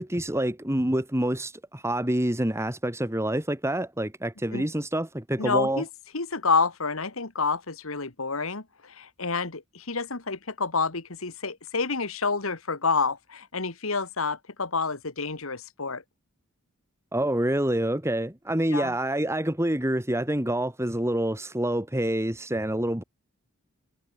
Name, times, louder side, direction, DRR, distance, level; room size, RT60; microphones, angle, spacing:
voice 1, 0.0-5.8 17.1-23.0, right 1 dB, 15° right, 2.4 m, -27 dB
voice 2, 5.4-5.9 6.1-16.0 18.7-18.9, left 4 dB, 70° left, 2.0 m, -28 dB
head